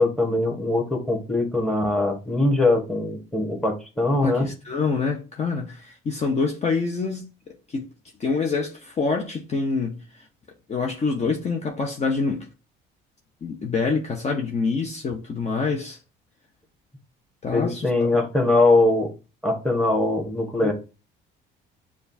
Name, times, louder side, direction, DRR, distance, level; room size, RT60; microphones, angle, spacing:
voice 1, 0.0-4.5 17.5-19.1 19.4-20.7, left 2 dB, 5° left, 1.3 m, -22 dB
voice 2, 4.2-7.9 8.2-10.2 10.7-12.5 13.4-16.0 17.4-18.2 20.6-20.7, left 4 dB, 35° left, 0.7 m, -26 dB
6.8 x 2.4 x 2.7 m
supercardioid pair, 90°, 20 cm